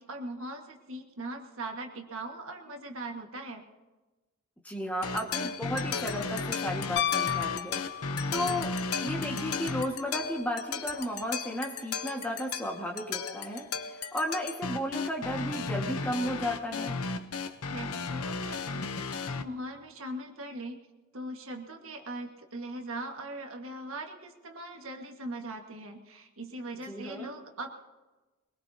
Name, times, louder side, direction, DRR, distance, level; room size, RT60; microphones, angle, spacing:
voice 1, 0.0-3.7 17.7-20.8 21.1-27.7, right 1 dB, 65° right, 3 dB, 1.6 m, -40 dB
voice 2, 4.6-7.8 8.3-8.7 9.0-17.0 26.9-27.3, equal, 5° left, 1 dB, 1.6 m, -34 dB
sound 1, 5.0-19.4, left 4 dB, 80° left, 0.8 m, -34 dB
Piano, 7.0-8.5 10.9-11.0, left 11 dB, 50° left, 0.5 m, -31 dB
23.0 x 21.0 x 2.8 m, 1.2 s
head